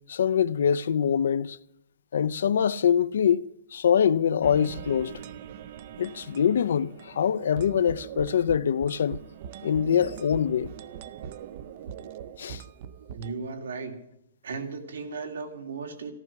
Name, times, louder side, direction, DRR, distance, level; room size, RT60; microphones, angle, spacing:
voice 1, 0.1-1.6 2.1-5.2 6.0-9.2 9.6-10.7 12.4-12.6, left 8 dB, 70° left, 0.5 m, -24 dB
sound 1, 4.4-13.3, right 8 dB, 35° right, 0.5 m, -41 dB
voice 2, 13.1-14.0 14.4-16.1, right 4 dB, 80° right, 2.4 m, -36 dB
14.5 x 13.0 x 5.8 m
hypercardioid pair, 175°, 0 cm